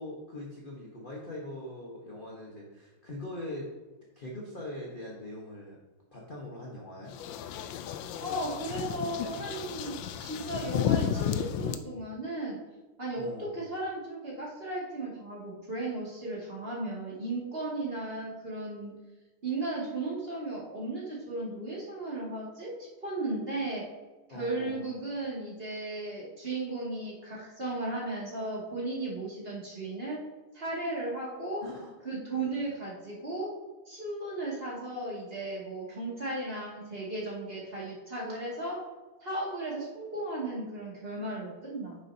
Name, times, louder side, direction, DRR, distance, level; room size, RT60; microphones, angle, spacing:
voice 1, 0.0-3.7 4.1-5.8 6.1-7.1 13.2-13.6 24.3-24.9 31.6-31.9 32.3-32.5, left 1 dB, 30° left, -3 dB, 1.0 m, -42 dB
sound 1, 7.1-11.8, left 9 dB, 75° left, 1.2 m, -33 dB
voice 2, 8.2-12.6 13.0-18.9 19.4-23.9 24.3-30.2 30.5-31.6 32.0-33.5 33.9-38.8 39.2-42.0, right 2 dB, 25° right, -6 dB, 2.4 m, -35 dB
9.7 x 6.9 x 2.8 m, 1.2 s
omnidirectional pair, 2.4 m